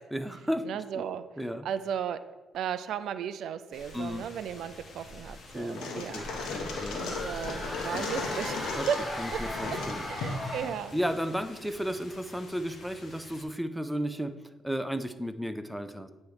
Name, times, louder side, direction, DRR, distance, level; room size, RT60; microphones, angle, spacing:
voice 1, 0.1-0.6 1.4-1.7 3.9-4.2 5.5-7.0 7.9-8.1 8.7-8.9 9.2-10.0 10.4-10.5 10.9-14.3 14.6-16.1, equal, ahead, 9 dB, 0.5 m, -34 dB
voice 2, 0.7-1.2 1.6-2.2 2.5-6.3 6.9-8.6 8.9-9.0 10.1-11.0, right 8 dB, 75° right, 12 dB, 0.3 m, -35 dB
sound 1, 3.7-13.4, left 1 dB, 55° left, 1.3 m, -47 dB
sound 2, 5.6-11.1, left 4 dB, 85° left, 1.0 m, -36 dB
sound 3, 6.0-10.9, left 1 dB, 30° left, 1.4 m, -38 dB
8.7 x 3.1 x 4.8 m, 1.2 s
cardioid pair, 90°, 0 cm